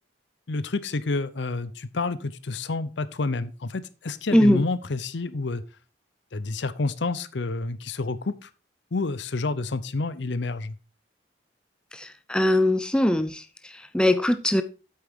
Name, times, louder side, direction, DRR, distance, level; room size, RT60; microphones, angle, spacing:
voice 1, 0.5-5.6 6.3-8.5 8.9-10.7, left 3 dB, 65° left, 15 dB, 0.6 m, -29 dB
voice 2, 11.9-14.6, left 1 dB, 5° left, 10 dB, 0.4 m, -22 dB
8.5 x 8.0 x 3.6 m, 0.33 s
head